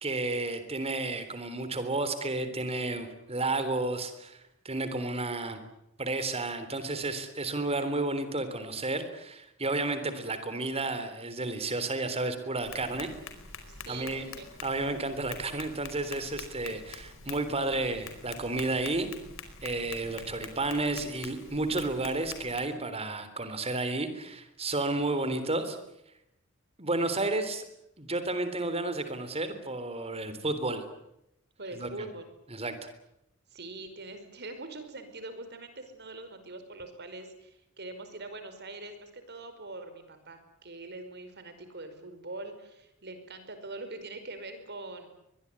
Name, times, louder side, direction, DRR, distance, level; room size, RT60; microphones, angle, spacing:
voice 1, 0.0-4.4 4.7-5.6 6.0-13.1 13.9-14.3 14.6-19.1 19.6-25.8 26.8-27.7 28.0-30.9 31.8-32.1 32.5-32.7, right 2 dB, 30° right, 10 dB, 3.6 m, -32 dB
Tap, 12.6-22.6, left 5 dB, 70° left, 4.8 m, -46 dB
voice 2, 13.7-14.4 31.6-32.3 33.5-45.1, right 2 dB, 55° right, 9 dB, 5.2 m, -43 dB
24.0 x 21.0 x 9.7 m, 0.83 s
head